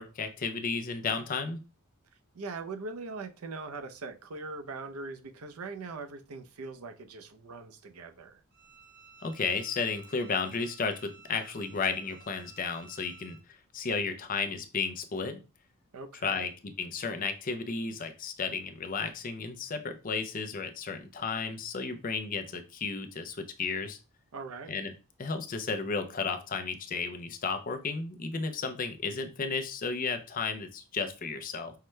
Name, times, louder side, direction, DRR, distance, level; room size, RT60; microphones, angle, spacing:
voice 1, 0.0-1.6 9.2-13.4 13.7-15.4 16.2-16.5 16.8-24.0 24.7-24.9 25.2-31.7, left 4 dB, 40° left, 7 dB, 0.5 m, -33 dB
voice 2, 2.3-8.4 15.9-16.5 24.3-24.7, right 3 dB, 75° right, 7 dB, 0.6 m, -41 dB
Bowed string instrument, 8.5-13.4, right 5 dB, 50° right, 1.1 m, -54 dB
5.6 x 2.2 x 3.2 m, 0.31 s
head